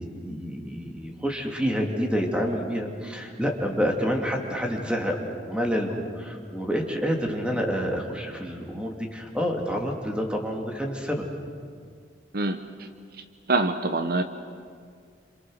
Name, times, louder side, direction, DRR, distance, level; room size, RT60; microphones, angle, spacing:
voice 1, 0.0-11.3, equal, 5° right, 1 dB, 2.8 m, -28 dB
voice 2, 12.3-12.9 13.5-14.2, right 2 dB, 60° right, 9 dB, 1.0 m, -25 dB
28.0 x 27.5 x 6.6 m, 2.1 s
head